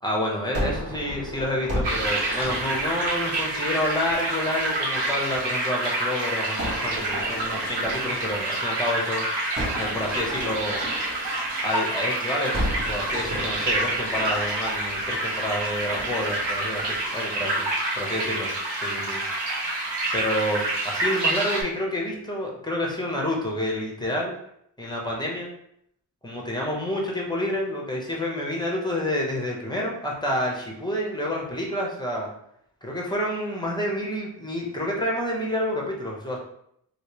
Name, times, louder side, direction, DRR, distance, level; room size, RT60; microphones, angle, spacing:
voice 1, 0.0-9.3 9.8-10.8 11.6-12.6 12.9-17.7 17.9-18.5 18.7-19.2 20.1-24.3 24.8-25.5 26.2-32.3 32.8-36.4, left 1 dB, 10° left, -2 dB, 0.9 m, -28 dB
Gunshot gunfire, 0.5-5.7 6.6-9.0 9.6-12.0 12.5-17.7, equal, 35° right, 1.3 m, -35 dB
sound 1, 1.8-21.6, right 2 dB, 90° right, 1.1 m, -28 dB
3.1 x 2.9 x 3.0 m, 0.72 s
wide cardioid pair, 90°, 41 cm